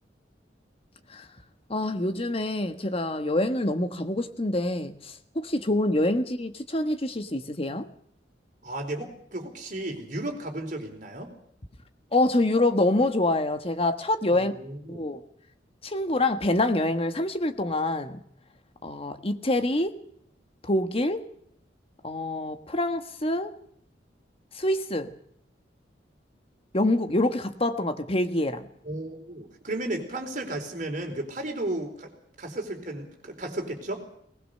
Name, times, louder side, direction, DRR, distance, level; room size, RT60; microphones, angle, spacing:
voice 1, 1.7-7.8 12.1-14.5 14.9-15.2 15.8-18.2 18.8-19.9 20.6-21.3 22.0-23.5 24.5-25.1 26.7-28.7, left 1 dB, 30° left, 8 dB, 1.4 m, -26 dB
voice 2, 8.6-11.3 14.3-15.0 28.8-32.1 32.4-34.0, right 1 dB, 45° right, 3 dB, 4.4 m, -34 dB
20.5 x 20.0 x 6.7 m, 0.67 s
head